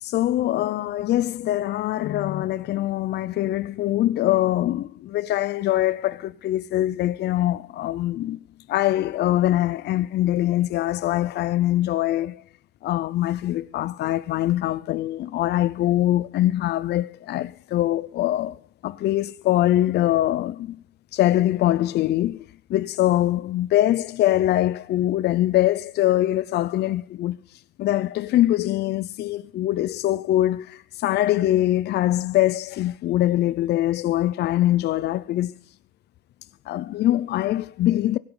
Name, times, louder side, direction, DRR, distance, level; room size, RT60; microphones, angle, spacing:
voice 1, 0.0-8.4 8.7-12.4 12.8-20.8 21.1-27.4 27.8-35.5 36.7-38.2, left 14 dB, 60° left, 0.7 m, -23 dB
18.0 x 17.0 x 4.0 m
cardioid pair, 100°, 19 cm